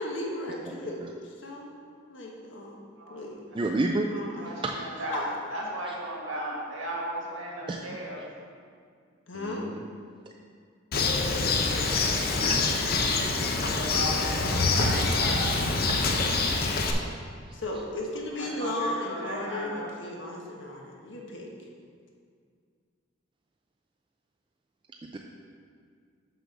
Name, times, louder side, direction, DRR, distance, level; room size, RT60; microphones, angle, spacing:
voice 1, 0.0-2.8 3.1-3.5 4.0-4.5 5.0-5.3 9.3-9.6 17.5-21.5, left 1 dB, 65° left, -1 dB, 1.2 m, -35 dB
voice 2, 3.5-4.1 4.6-4.7 7.7-8.2 9.3-9.8 12.2-12.6 13.6-14.0 15.9-16.0 25.0-25.2, right 2 dB, 25° right, 1 dB, 0.3 m, -31 dB
voice 3, 4.4-8.3 13.6-15.5 18.4-19.9, right 1 dB, 80° right, -3 dB, 1.9 m, -35 dB
Bird, 10.9-16.9, left 3 dB, 50° left, 0.6 m, -25 dB
6.2 x 6.2 x 5.3 m, 2.1 s
head